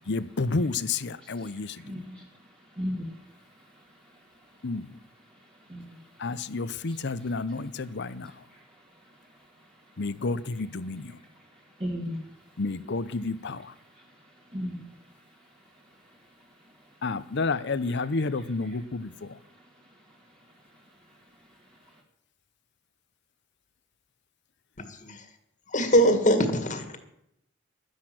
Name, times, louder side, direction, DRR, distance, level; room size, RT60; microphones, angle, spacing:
voice 1, 0.1-2.0 4.6-5.0 6.2-8.4 10.0-11.2 12.6-13.7 17.0-19.4, left 3 dB, 60° left, 14 dB, 0.7 m, -30 dB
voice 2, 1.2-2.3 2.8-3.2 5.7-6.1 6.9-7.0 8.2-8.6 11.8-12.3 14.0-14.1 14.5-14.9 17.5-17.6, equal, 25° right, -2 dB, 2.0 m, -36 dB
voice 3, 25.7-27.0, equal, 40° left, 7 dB, 1.9 m, -22 dB
12.0 x 10.5 x 7.7 m, 0.78 s
head